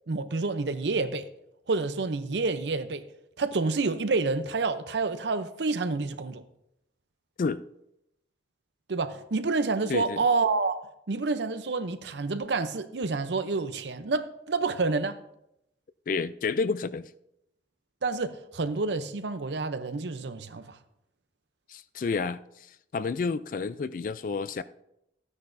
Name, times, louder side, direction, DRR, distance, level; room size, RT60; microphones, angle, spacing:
voice 1, 0.1-1.3 1.7-3.0 3.4-6.4 8.9-10.8 11.1-15.2 18.0-20.8, right 3 dB, 75° right, 0.6 m, -28 dB
voice 2, 16.1-17.1 21.7-22.4 22.9-24.6, left 4 dB, 50° left, 0.3 m, -30 dB
13.5 x 9.7 x 2.6 m
head